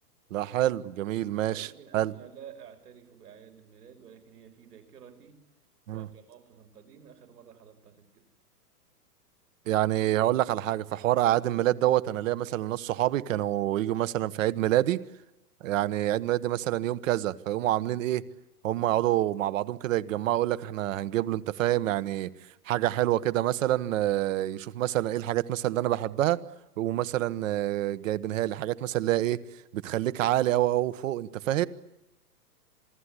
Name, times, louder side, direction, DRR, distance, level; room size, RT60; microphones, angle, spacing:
voice 1, 0.3-1.7 1.9-2.1 5.9-6.1 9.7-15.0 15.6-18.2 18.6-22.3 22.7-26.4 26.8-29.4 29.7-31.7, right 14 dB, 50° right, 17 dB, 1.4 m, -27 dB
voice 2, 1.5-5.4 5.9-8.3, right 8 dB, 70° right, 7 dB, 5.8 m, -51 dB
27.5 x 20.0 x 9.9 m, 0.94 s
hypercardioid pair, 135°, 48 cm